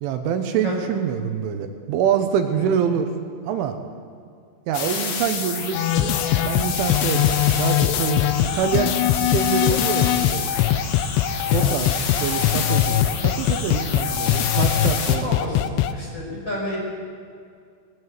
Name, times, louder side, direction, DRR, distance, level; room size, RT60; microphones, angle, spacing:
voice 1, 0.0-3.1 3.5-3.8 4.7-10.4 11.5-11.9 12.2-15.3, right 8 dB, 80° right, 7 dB, 3.5 m, -25 dB
sound 1, 4.7-15.2, left 6 dB, 65° left, 1.8 m, -29 dB
sound 2, 5.7-15.9, left 11 dB, 80° left, 3.0 m, -21 dB
voice 2, 11.5-11.9 15.0-15.6 15.9-16.8, left 1 dB, 25° left, -3 dB, 6.4 m, -31 dB
19.0 x 16.5 x 9.6 m, 2.2 s
omnidirectional pair, 5.6 m